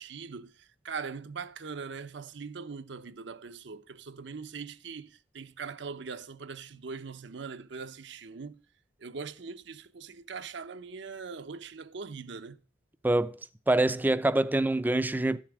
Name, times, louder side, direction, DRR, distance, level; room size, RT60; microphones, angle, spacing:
voice 1, 0.0-8.6 9.0-12.6, right 5 dB, 70° right, 0.7 m, -41 dB
voice 2, 13.0-13.4 13.7-15.4, right 2 dB, 10° right, 0.4 m, -25 dB
13.0 x 7.3 x 4.9 m
head